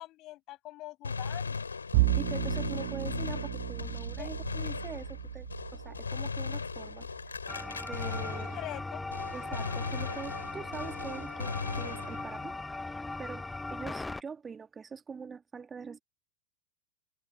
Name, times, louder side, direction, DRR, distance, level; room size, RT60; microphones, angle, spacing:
voice 1, 0.0-1.6 4.2-4.3 8.3-9.0, left 17 dB, 35° left, 7.2 m, -43 dB
Gunshot gunfire, 1.0-8.8 9.1-12.5, left 5 dB, 75° left, 3.3 m, -38 dB
Bowed string instrument, 1.9-8.4, right 22 dB, 50° right, 1.7 m, -34 dB
voice 2, 2.2-7.1 7.8-8.6 9.3-16.0, right 5 dB, 15° right, 1.4 m, -44 dB
sound 1, 7.5-14.2, left 3 dB, 10° left, 0.5 m, -39 dB
figure-of-eight pair, 90°, 0 cm